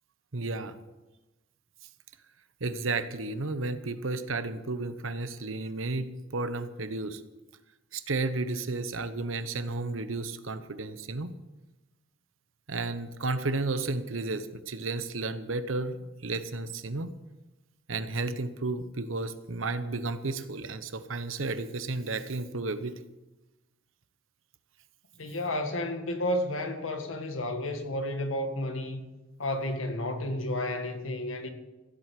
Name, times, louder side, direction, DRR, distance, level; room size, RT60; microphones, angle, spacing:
voice 1, 0.3-0.8 2.6-7.2 7.9-11.3 12.7-17.1 17.9-22.9, right 3 dB, 80° right, 1.0 m, -32 dB
voice 2, 25.2-29.0 29.4-31.5, left 1 dB, 85° left, 1.8 m, -31 dB
15.5 x 8.1 x 7.6 m
head